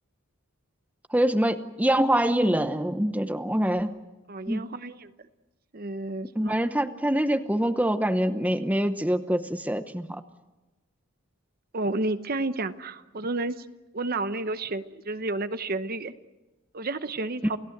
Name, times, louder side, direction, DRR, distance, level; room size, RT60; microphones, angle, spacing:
voice 1, 1.1-3.9 4.5-4.7 6.4-10.2, right 1 dB, 5° right, 9 dB, 0.8 m, -25 dB
voice 2, 4.3-5.1 5.7-6.6 11.7-13.7 13.9-16.1 16.7-17.6, right 2 dB, 45° right, 11 dB, 0.8 m, -31 dB
29.0 x 17.0 x 8.0 m, 1.1 s
head